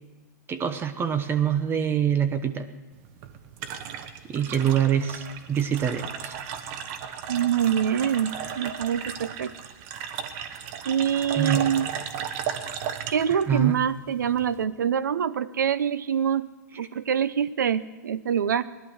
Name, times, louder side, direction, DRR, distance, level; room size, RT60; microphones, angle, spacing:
voice 1, 0.5-2.7 4.3-6.4 11.4-11.7 13.3-13.8, right 9 dB, 25° right, 9 dB, 0.9 m, -25 dB
sound 1, 2.9-14.6, right 8 dB, 50° right, 1.2 m, -35 dB
voice 2, 7.3-9.5 10.8-11.9 13.1-16.5 16.8-18.7, right 8 dB, 90° right, 16 dB, 0.6 m, -25 dB
17.5 x 11.5 x 6.3 m, 1.2 s
hypercardioid pair, 115°, 10 cm